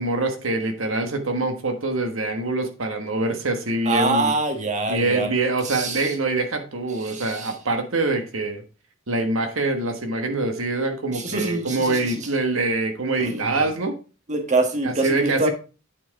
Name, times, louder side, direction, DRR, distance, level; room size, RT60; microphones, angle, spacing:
voice 1, 0.0-4.3 4.9-8.6 9.1-14.0 14.8-15.5, right 2 dB, 85° right, 5 dB, 1.4 m, -24 dB
voice 2, 3.8-5.3 5.6-6.1 7.0-7.5 11.1-12.3 13.2-13.5 14.3-15.5, right 3 dB, 35° right, 5 dB, 1.4 m, -25 dB
9.3 x 4.6 x 4.7 m, 0.34 s
head